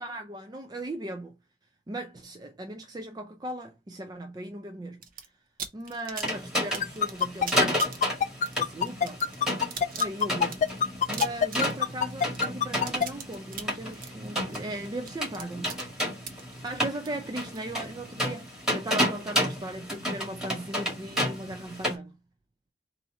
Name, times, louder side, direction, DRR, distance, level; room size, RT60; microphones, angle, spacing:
voice 1, 0.0-1.3 1.9-5.0 5.7-8.0 8.5-9.2 10.0-10.6 11.1-15.8 16.6-22.1, right 1 dB, 25° right, 0.5 m, -38 dB
sound 1, 5.0-5.3 5.6-17.9, right 6 dB, 55° right, 0.9 m, -40 dB
sound 2, 6.2-21.9, equal, 5° right, 2.0 m, -32 dB
sound 3, 6.8-13.1, left 7 dB, 45° left, 0.3 m, -24 dB
4.2 x 2.8 x 3.8 m
head